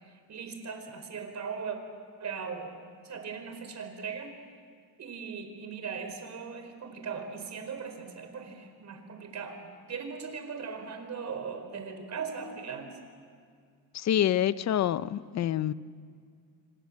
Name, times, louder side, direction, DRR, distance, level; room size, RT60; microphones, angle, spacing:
voice 1, 0.3-1.8 2.2-2.8 3.0-4.3 5.0-9.6 9.9-13.0, right 5 dB, 40° right, 4.7 m, -39 dB
voice 2, 13.9-15.7, left 11 dB, 40° left, 0.7 m, -27 dB
28.5 x 24.5 x 7.5 m
cardioid pair, 125°, 40 cm